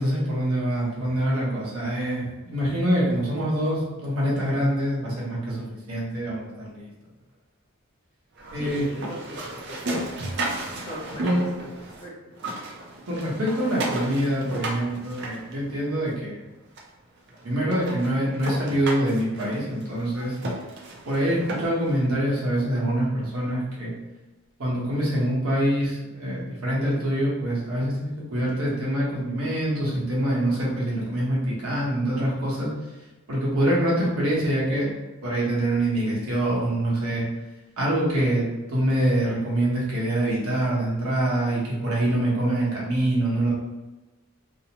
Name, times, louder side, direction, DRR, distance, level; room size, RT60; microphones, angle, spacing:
voice 1, 0.0-6.9 8.5-8.8 11.2-11.4 13.1-16.4 17.4-20.3 21.1-23.9 24.6-32.7 33.3-34.9 35.2-37.2 37.8-43.5, right 1 dB, 80° right, -6 dB, 1.0 m, -25 dB
sound 1, 8.4-12.1 12.3-16.1 16.8-16.9 17.3-17.4 17.7-21.9, right 2 dB, 50° right, 0.4 m, -34 dB
voice 2, 8.5-9.8 10.9-12.1, equal, 30° left, -5 dB, 0.7 m, -39 dB
2.7 x 2.0 x 2.8 m, 1.1 s
head